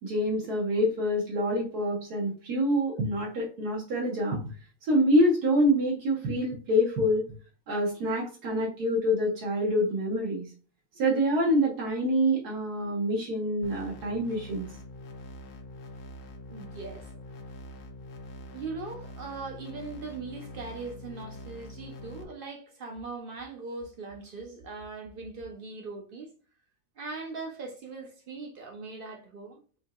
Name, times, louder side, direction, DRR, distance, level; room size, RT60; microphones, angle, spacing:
voice 1, 0.0-4.4 4.8-7.3 7.7-10.5 11.0-14.7, equal, 80° right, 1.5 m, -26 dB
sound 1, 13.6-22.2, left 1 dB, 85° left, 1.3 m, -44 dB
voice 2, 16.5-17.1 18.5-26.3 27.0-29.6, right 3 dB, 60° right, 0.5 m, -40 dB
4.4 x 2.7 x 2.3 m
omnidirectional pair, 1.6 m